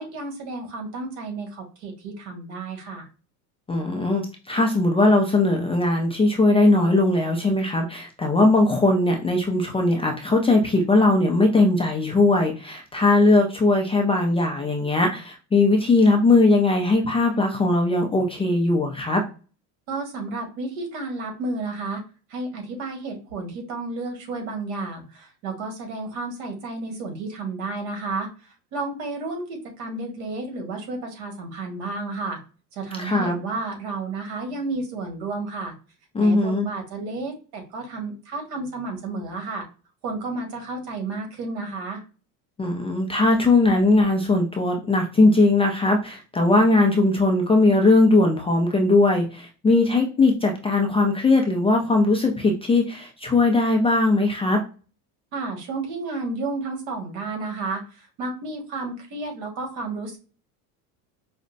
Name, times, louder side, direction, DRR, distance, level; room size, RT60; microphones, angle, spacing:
voice 1, 0.0-3.1 19.9-22.0 22.3-32.4 32.7-35.7 36.2-39.6 40.0-42.0 55.3-60.2, right 3 dB, 70° right, 3 dB, 1.6 m, -32 dB
voice 2, 3.7-19.2 33.0-33.4 36.1-36.7 42.6-54.6, left 2 dB, 15° left, 1 dB, 0.4 m, -19 dB
5.0 x 2.1 x 2.5 m, 0.34 s
supercardioid pair, 110°, 47 cm